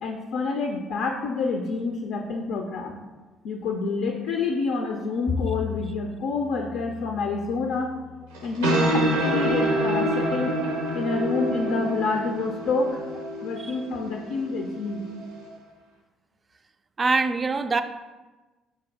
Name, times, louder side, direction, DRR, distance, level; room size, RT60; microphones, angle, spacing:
voice 1, 0.0-3.0 3.4-7.9 8.4-10.5 10.9-13.0 13.4-15.0, left 4 dB, 70° left, 2 dB, 0.4 m, -28 dB
Bowed string instrument, 5.3-11.6, left 6 dB, 10° left, 0.6 m, -38 dB
sound 1, 8.3-15.5, right 1 dB, 90° right, 0.6 m, -27 dB
voice 2, 17.0-17.8, right 3 dB, 35° right, 9 dB, 0.3 m, -24 dB
4.9 x 2.3 x 4.6 m, 1.2 s
hypercardioid pair, 55°, 0 cm